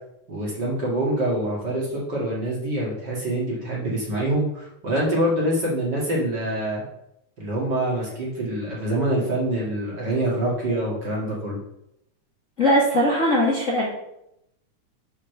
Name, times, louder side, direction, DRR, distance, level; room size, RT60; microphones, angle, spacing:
voice 1, 0.3-6.8 7.4-11.6, right 1 dB, 40° right, -4 dB, 2.5 m, -25 dB
voice 2, 12.6-13.9, equal, 30° left, -5 dB, 1.5 m, -20 dB
6.6 x 5.7 x 6.6 m, 0.80 s
omnidirectional pair, 3.3 m